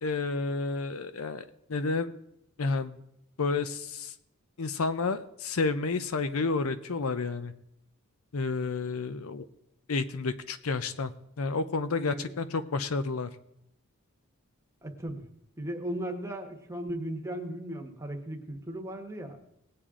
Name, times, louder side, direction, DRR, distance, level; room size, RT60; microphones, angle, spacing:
voice 1, 0.0-1.4 1.7-2.2 2.6-3.0 3.4-4.1 4.6-7.5 8.3-9.4 9.9-11.1 11.4-13.3, left 3 dB, 75° left, 12 dB, 0.7 m, -30 dB
voice 2, 14.8-15.3 15.6-19.4, right 1 dB, 15° right, 4 dB, 1.2 m, -36 dB
19.0 x 8.5 x 3.7 m, 0.79 s
head